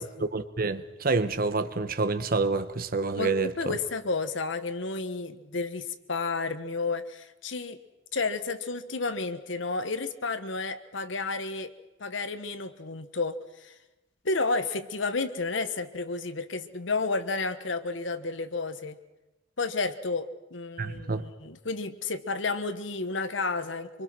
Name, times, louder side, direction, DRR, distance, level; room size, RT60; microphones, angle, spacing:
voice 1, 0.0-3.8 20.8-21.2, right 3 dB, 50° right, 1.2 m, -28 dB
voice 2, 3.1-7.8 8.1-11.7 12.0-13.7 14.2-19.0 19.6-24.0, left 3 dB, 70° left, 1.3 m, -31 dB
25.5 x 24.5 x 6.2 m
head